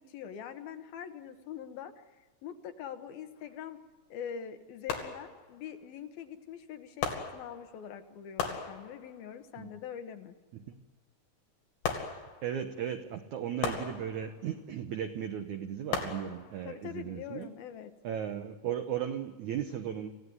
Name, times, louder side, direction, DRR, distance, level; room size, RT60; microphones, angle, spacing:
voice 1, 0.1-3.8 4.1-10.3 16.7-17.9, left 8 dB, 70° left, 8 dB, 2.9 m, -43 dB
sound 1, 3.4-3.5 4.9-5.7 7.0-7.9 8.4-9.3 11.8-12.7 13.6-14.6 15.9-16.8 17.4-17.5, left 6 dB, 85° left, 4.6 m, -37 dB
voice 2, 12.0-17.5 18.0-20.1, right 9 dB, 75° right, 7 dB, 1.7 m, -36 dB
27.5 x 16.5 x 9.6 m, 1.2 s
omnidirectional pair, 4.8 m